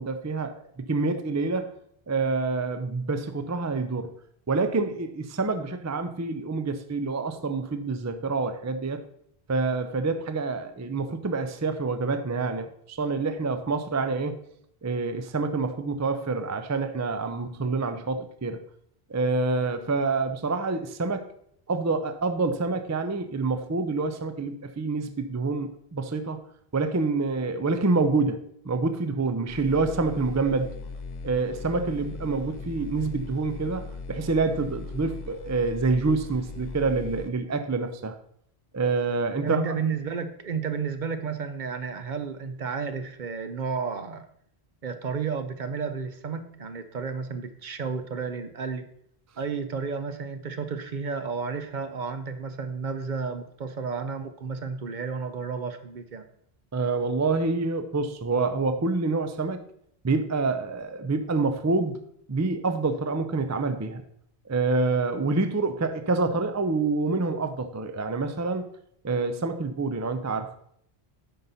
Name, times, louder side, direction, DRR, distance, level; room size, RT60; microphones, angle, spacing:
voice 1, 0.0-1.7 2.1-4.1 4.5-9.0 9.5-14.3 14.8-18.6 19.1-21.2 21.7-26.4 26.7-30.7 31.2-38.2 38.7-39.6 56.7-59.6 60.0-62.0 62.3-64.0 64.5-68.6 69.0-70.5, right 3 dB, 25° right, 9 dB, 0.4 m, -27 dB
sound 1, 29.5-37.3, left 4 dB, 50° left, 0.7 m, -39 dB
voice 2, 39.4-44.3 44.8-48.9 49.4-56.2, right 5 dB, 55° right, 9 dB, 0.7 m, -32 dB
9.2 x 5.6 x 4.1 m, 0.68 s
omnidirectional pair, 1.0 m